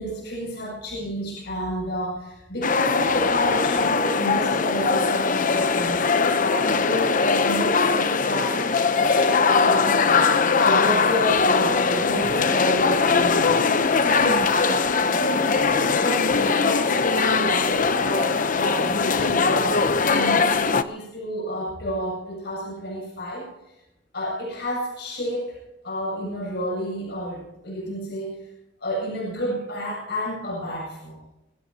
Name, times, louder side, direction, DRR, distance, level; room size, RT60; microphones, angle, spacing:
voice 1, 0.0-14.7 15.2-23.7 24.1-25.6 25.8-28.5 28.8-31.2, equal, 65° left, -2 dB, 7.6 m, -30 dB
sound 1, 2.6-20.8, left 4 dB, 45° left, 0.9 m, -21 dB
25.0 x 16.5 x 2.9 m, 0.91 s
head